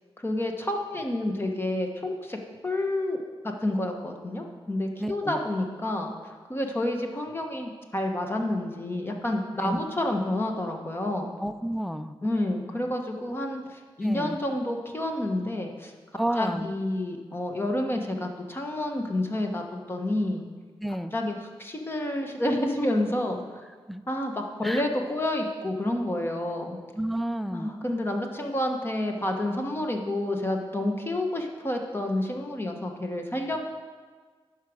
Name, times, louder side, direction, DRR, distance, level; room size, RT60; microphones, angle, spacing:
voice 1, 0.2-3.2 3.4-6.1 6.5-11.3 12.2-15.9 16.4-20.5 21.1-23.6 24.1-26.8 27.5-33.7, left 1 dB, 25° left, 3 dB, 1.2 m, -29 dB
voice 2, 5.0-5.4 9.6-9.8 11.4-12.1 14.0-14.4 16.2-16.7 20.8-21.1 23.9-24.0 24.6-24.8 27.0-27.7, right 1 dB, ahead, 10 dB, 0.4 m, -31 dB
11.0 x 4.8 x 6.3 m, 1.5 s
wide cardioid pair, 110°, 10 cm